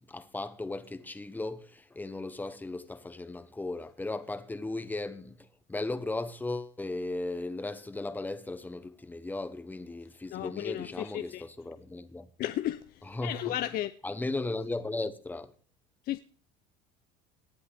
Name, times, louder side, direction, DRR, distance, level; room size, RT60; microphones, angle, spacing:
voice 1, 0.1-12.3 13.0-13.5 14.0-15.5, left 2 dB, 10° left, 1.0 m, -36 dB
voice 2, 10.3-11.4 12.4-13.9 16.0-16.2, left 13 dB, 45° left, 0.6 m, -34 dB
18.5 x 10.5 x 3.5 m
cardioid pair, 125°, 21 cm